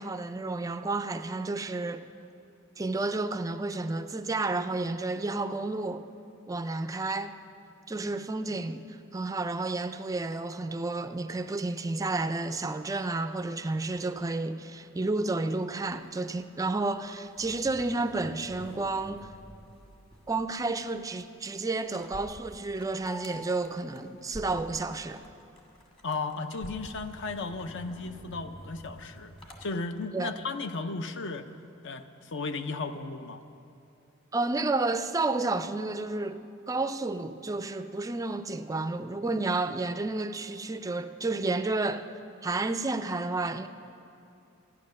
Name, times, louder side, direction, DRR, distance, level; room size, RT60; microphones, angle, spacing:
voice 1, 0.0-2.1 2.8-6.1 6.5-7.4 7.9-8.8 9.1-19.3 20.3-25.2 30.1-30.3 34.3-42.1 42.4-43.7, right 3 dB, 15° right, 0.4 m, -31 dB
sound 1, 15.9-29.6, equal, 25° left, 1.4 m, -51 dB
sound 2, 21.9-27.9, equal, 80° left, 1.6 m, -50 dB
voice 2, 26.0-29.4 29.6-31.5 31.8-33.4, left 3 dB, 55° left, 0.6 m, -35 dB
13.0 x 9.6 x 6.5 m
head